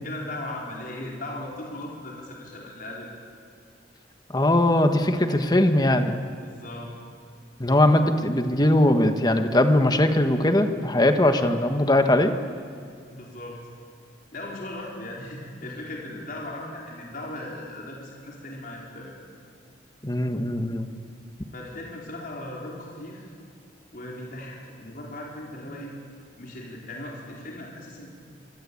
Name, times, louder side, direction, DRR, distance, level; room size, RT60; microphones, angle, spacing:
voice 1, 0.0-3.1 6.4-6.9 11.2-11.5 13.1-13.6 14.3-19.1 21.5-23.3 23.9-26.0 26.4-28.1, left 1 dB, 50° left, -3 dB, 4.7 m, -38 dB
voice 2, 4.3-6.2 7.6-12.3 20.0-20.9, left 1 dB, 20° left, 7 dB, 1.6 m, -20 dB
25.5 x 25.5 x 8.7 m, 2.2 s
head